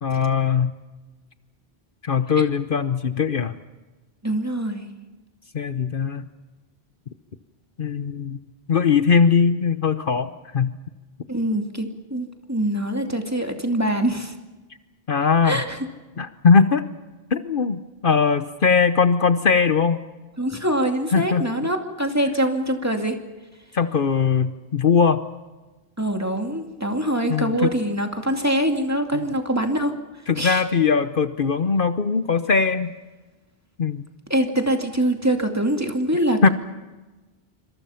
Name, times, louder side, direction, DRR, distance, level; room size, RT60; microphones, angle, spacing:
voice 1, 0.0-0.7 2.0-3.5 5.5-6.2 7.8-8.4 8.7-10.3 10.5-10.8 15.1-15.6 16.2-16.8 17.3-20.0 21.1-21.4 23.7-25.2 27.3-27.7 29.1-29.3 30.3-32.9 33.8-34.0 36.4-36.5, left 5 dB, 55° left, 10 dB, 1.1 m, -20 dB
voice 2, 4.2-4.9 11.3-14.3 15.4-15.8 20.4-23.2 26.0-29.9 30.4-30.6 34.3-36.5, right 1 dB, 15° right, 4 dB, 2.5 m, -24 dB
27.0 x 25.5 x 5.8 m, 1.2 s
omnidirectional pair, 1.1 m